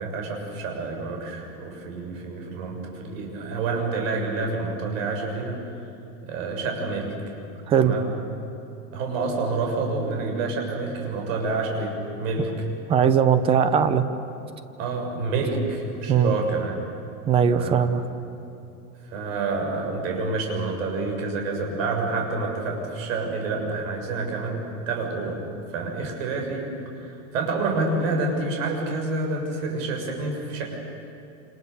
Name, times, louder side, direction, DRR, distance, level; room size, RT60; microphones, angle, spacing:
voice 1, 0.0-5.6 6.2-7.1 7.8-8.2 8.9-12.5 14.8-16.8 17.4-17.8 19.0-25.4 25.7-30.8, right 3 dB, 55° right, 1 dB, 6.8 m, -28 dB
voice 2, 12.9-14.0 16.1-16.4 17.3-18.0, right 7 dB, 10° right, 11 dB, 0.6 m, -19 dB
28.0 x 28.0 x 7.0 m, 2.8 s
supercardioid pair, 165°, 45 cm